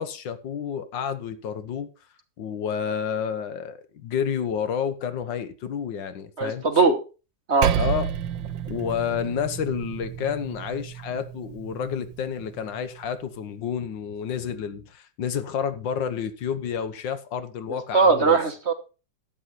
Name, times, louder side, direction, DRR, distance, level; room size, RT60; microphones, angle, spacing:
voice 1, 0.0-1.9 2.4-6.6 7.8-8.1 8.7-18.4, left 7 dB, 80° left, 1.7 m, -30 dB
voice 2, 6.4-6.9 7.5-7.7 17.9-18.7, right 4 dB, 40° right, 1.2 m, -19 dB
Percussion, 7.6-12.4, right 9 dB, 85° right, 1.6 m, -30 dB
12.5 x 8.7 x 4.1 m
omnidirectional pair, 2.0 m